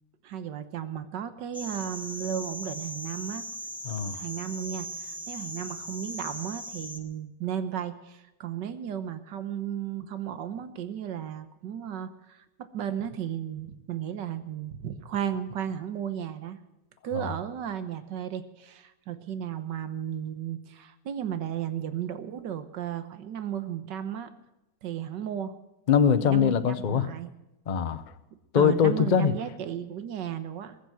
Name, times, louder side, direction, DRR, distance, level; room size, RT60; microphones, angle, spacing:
voice 1, 0.2-3.4 4.1-16.6 17.0-24.3 24.8-25.5 26.2-26.6 26.9-27.3 28.6-30.8, right 9 dB, 90° right, 11 dB, 1.7 m, -34 dB
sound 1, 1.5-7.0, equal, 5° right, 1.5 m, -39 dB
voice 2, 3.8-4.2 17.1-17.3 25.9-27.1 27.7-28.0 28.5-29.3, left 7 dB, 40° left, 10 dB, 0.7 m, -22 dB
20.5 x 8.3 x 7.7 m, 0.94 s
omnidirectional pair, 1.8 m